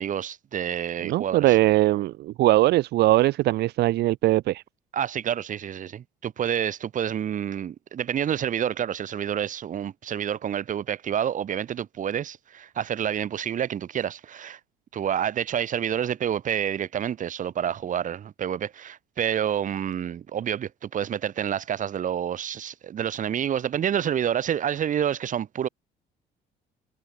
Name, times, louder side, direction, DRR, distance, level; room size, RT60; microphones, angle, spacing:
voice 1, 0.0-1.6 4.9-14.6 14.9-25.7, right 9 dB, 50° right, 3.1 m, -28 dB
voice 2, 1.0-4.6, right 16 dB, 75° right, 1.3 m, -21 dB
cardioid pair, 110°, 17 cm